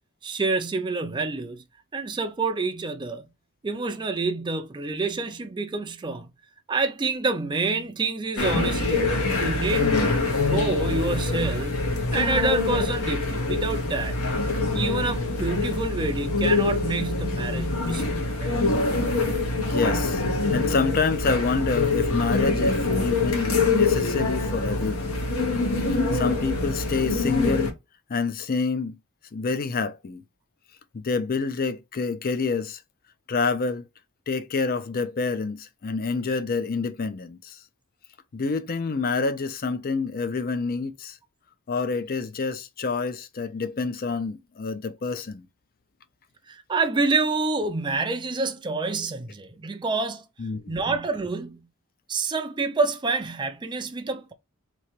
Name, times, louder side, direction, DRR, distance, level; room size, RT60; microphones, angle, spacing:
voice 1, 0.2-1.6 1.9-3.3 3.6-6.3 6.7-9.1 9.4-10.1 10.5-11.8 12.1-14.2 14.7-18.0 18.4-18.7 46.5-50.2 50.7-51.6 52.1-54.3, right 3 dB, 20° right, 0.4 m, -27 dB
sound 1, 8.4-27.7, left 3 dB, 70° left, 1.1 m, -25 dB
voice 2, 9.8-10.4 19.6-20.2 20.5-25.2 25.9-27.7 28.1-29.0 29.3-30.2 30.9-32.8 33.3-33.9 34.3-37.6 38.3-41.2 41.7-45.5 50.4-50.8, left 4 dB, 40° left, 0.5 m, -27 dB
3.0 x 2.8 x 4.4 m
head